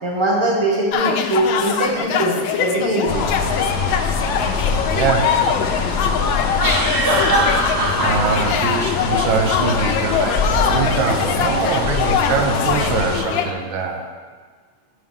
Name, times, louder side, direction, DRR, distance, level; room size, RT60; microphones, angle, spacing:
voice 1, 0.0-3.2, right 2 dB, 15° right, -4 dB, 1.4 m, -21 dB
sound 1, 0.9-13.5, left 7 dB, 75° left, 1.3 m, -23 dB
sound 2, 3.1-13.2, left 4 dB, 60° left, 0.6 m, -24 dB
sound 3, 3.6-3.7 6.6-8.5, right 1 dB, 65° right, 2.8 m, -20 dB
voice 2, 4.9-5.4 8.0-14.0, right 5 dB, 85° right, 3 dB, 1.5 m, -23 dB
10.5 x 5.4 x 3.7 m, 1.5 s
omnidirectional pair, 2.1 m